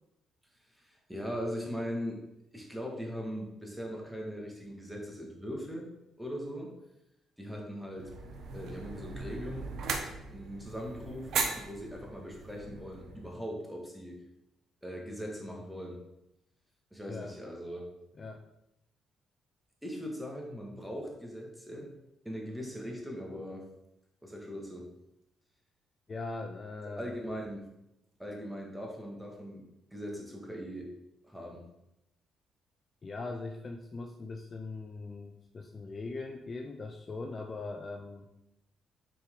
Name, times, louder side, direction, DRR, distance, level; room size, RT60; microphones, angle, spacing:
voice 1, 0.8-2.2 2.5-5.9 6.2-6.8 7.4-8.2 8.5-9.7 10.3-14.2 14.8-16.0 16.9-17.9 19.8-21.9 22.2-23.7 24.2-24.9 27.0-27.7 28.2-30.9 31.2-31.7, equal, ahead, 0 dB, 1.8 m, -40 dB
sound 1, 8.0-13.4, right 5 dB, 70° right, 0.9 m, -38 dB
voice 2, 17.1-17.4 18.1-18.5 26.1-27.2 33.0-38.3, left 3 dB, 35° left, 4 dB, 0.6 m, -40 dB
7.1 x 4.5 x 3.8 m, 0.85 s
cardioid pair, 90°, 0 cm